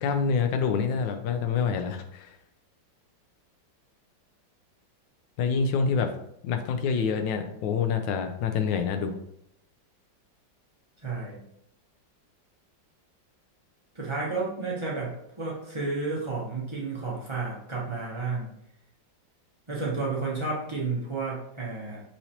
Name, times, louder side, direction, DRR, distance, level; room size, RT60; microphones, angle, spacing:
voice 1, 0.0-2.4 5.4-6.1 6.4-9.2, left 6 dB, 80° left, 7 dB, 1.3 m, -26 dB
voice 2, 11.0-11.4 13.9-18.5 19.7-22.0, right 3 dB, 30° right, -5 dB, 0.5 m, -31 dB
5.6 x 3.2 x 2.8 m, 0.73 s
omnidirectional pair, 2.0 m